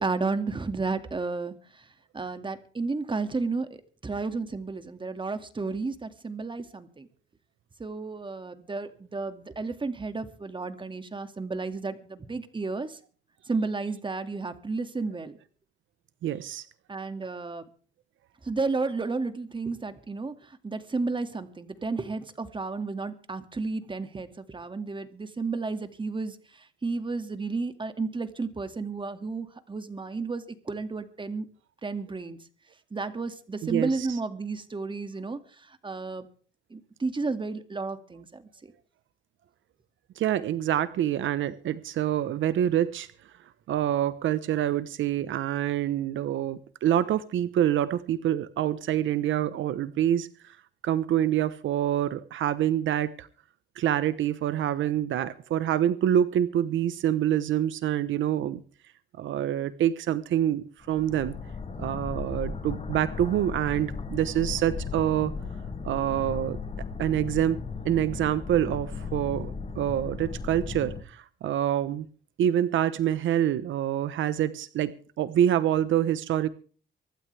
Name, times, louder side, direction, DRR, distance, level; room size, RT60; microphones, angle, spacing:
voice 1, 0.0-1.5 2.1-7.1 7.8-13.0 13.5-15.4 16.9-17.6 18.4-26.4 26.8-31.5 31.8-32.4 32.9-35.4 35.7-36.3 36.7-38.7, right 3 dB, 25° right, 9 dB, 2.2 m, -32 dB
voice 2, 16.2-16.6 33.6-34.2 40.2-43.1 43.7-50.6 50.8-53.3 53.8-58.6 59.2-61.3 61.8-65.3 65.8-66.6 67.0-67.6 67.8-72.1 72.4-76.5, right 11 dB, 75° right, 14 dB, 1.1 m, -26 dB
sound 1, 60.8-71.0, left 5 dB, 35° left, 4.1 m, -36 dB
24.5 x 12.5 x 3.4 m, 0.41 s
cardioid pair, 90°, 20 cm